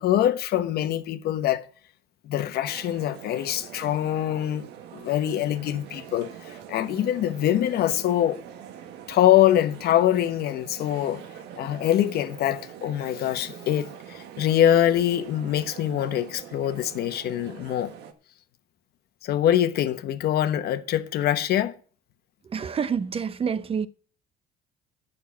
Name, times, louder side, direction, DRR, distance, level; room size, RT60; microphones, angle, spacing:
voice 1, 0.0-1.6 2.2-8.4 9.1-11.2 11.6-17.9 19.2-21.8, left 11 dB, 70° left, 1.1 m, -24 dB
sound 1, 2.7-18.1, right 9 dB, 85° right, 1.5 m, -44 dB
voice 2, 22.5-23.9, right 6 dB, 35° right, 0.8 m, -27 dB
9.4 x 6.7 x 8.5 m
cardioid pair, 110°, 17 cm